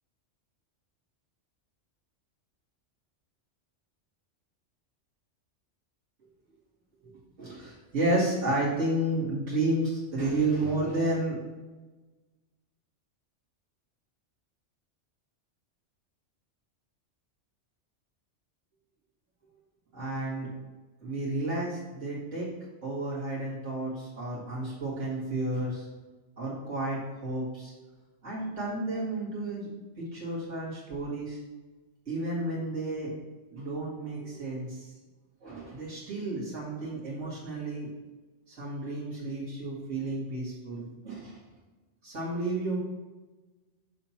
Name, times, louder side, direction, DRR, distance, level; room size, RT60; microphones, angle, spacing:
voice 1, 7.4-11.4 19.9-20.5 21.0-22.5 22.8-25.9 26.4-27.7 28.2-29.7 30.0-31.4 32.1-33.1 33.5-34.9 35.4-37.9 38.5-41.4 42.0-42.8, right 2 dB, 90° right, -8 dB, 2.5 m, -31 dB
6.7 x 2.9 x 5.8 m, 1.2 s
omnidirectional pair, 1.2 m